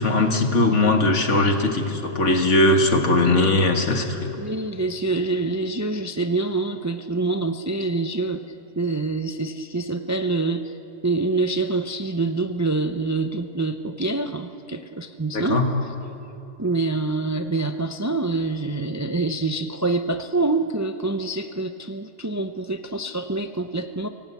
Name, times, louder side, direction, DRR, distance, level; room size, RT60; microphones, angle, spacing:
voice 1, 0.0-4.3 15.3-15.7, left 2 dB, 70° left, 4 dB, 2.1 m, -20 dB
voice 2, 4.4-8.4 8.8-10.7 11.0-15.7 16.6-24.1, right 3 dB, 20° right, 7 dB, 0.5 m, -26 dB
24.5 x 17.5 x 8.3 m, 2.8 s
omnidirectional pair, 1.3 m